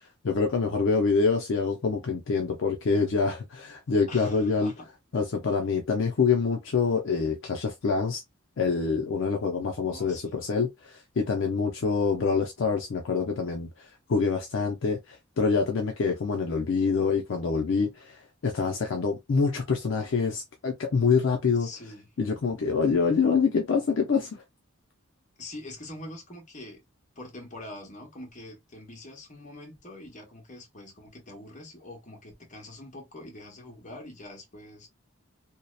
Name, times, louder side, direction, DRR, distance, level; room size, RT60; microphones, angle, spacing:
voice 1, 0.2-4.7 5.1-8.2 8.6-13.7 14.1-21.7 22.2-24.4, left 5 dB, 60° left, 0.4 m, -26 dB
voice 2, 4.1-4.9 9.9-10.5 21.6-22.1 25.4-26.8 27.2-34.9, left 1 dB, 35° left, 0.9 m, -44 dB
2.7 x 2.0 x 2.2 m
head